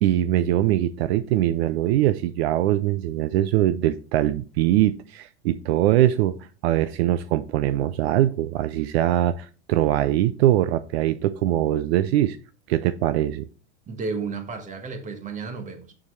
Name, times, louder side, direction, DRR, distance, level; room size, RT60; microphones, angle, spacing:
voice 1, 0.0-12.4 12.7-13.5, right 13 dB, 65° right, 0.5 m, -22 dB
voice 2, 13.9-15.9, right 4 dB, 20° right, 1.4 m, -32 dB
7.0 x 6.6 x 3.2 m
hypercardioid pair, 125°, 34 cm